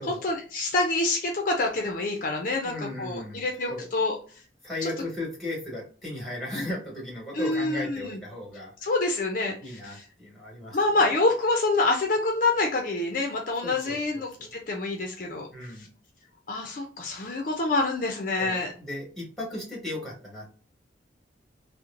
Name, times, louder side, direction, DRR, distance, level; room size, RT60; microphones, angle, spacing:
voice 1, 0.0-4.2 4.8-4.9 6.6-6.7 7.3-8.2 8.8-10.0 10.7-15.5 15.8-15.9 16.5-18.7, left 2 dB, 50° left, 2 dB, 0.4 m, -27 dB
voice 2, 2.6-3.9 4.6-8.9 9.6-10.8 13.6-14.5 15.5-15.9 18.4-20.5, left 1 dB, ahead, -3 dB, 1.4 m, -36 dB
3.0 x 2.0 x 2.4 m, 0.40 s
head